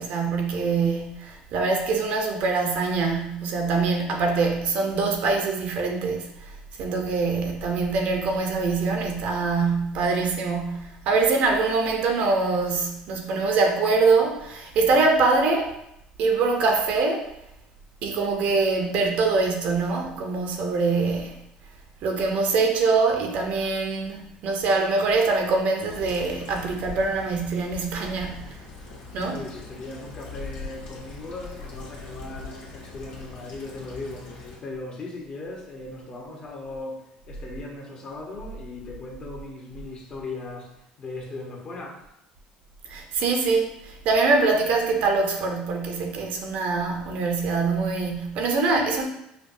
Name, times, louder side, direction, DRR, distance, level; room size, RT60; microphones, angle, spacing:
voice 1, 0.0-6.5 6.8-15.8 16.2-17.3 18.0-21.4 22.0-28.6 29.1-29.4 42.9-49.0, right 4 dB, 65° right, 2 dB, 0.8 m, -24 dB
sound 1, 25.9-34.6, left 3 dB, 80° left, 1.5 m, -41 dB
voice 2, 29.3-42.1, left 2 dB, 40° left, -1 dB, 1.0 m, -38 dB
5.7 x 2.2 x 2.7 m, 0.81 s
supercardioid pair, 110°, 3 cm